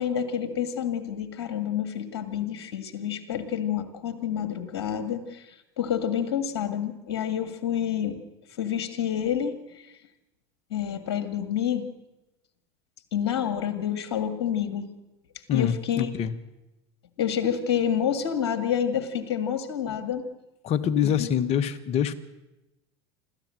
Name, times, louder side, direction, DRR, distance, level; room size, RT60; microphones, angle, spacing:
voice 1, 0.0-5.4 5.8-8.2 8.6-9.6 10.7-11.8 13.1-14.9 15.5-16.1 17.2-20.2 21.2-21.3, left 9 dB, 75° left, 9 dB, 2.0 m, -28 dB
voice 2, 15.5-16.3 20.6-22.1, left 9 dB, 50° left, 13 dB, 1.4 m, -25 dB
27.0 x 13.5 x 7.8 m, 0.97 s
hypercardioid pair, 85°, 14 cm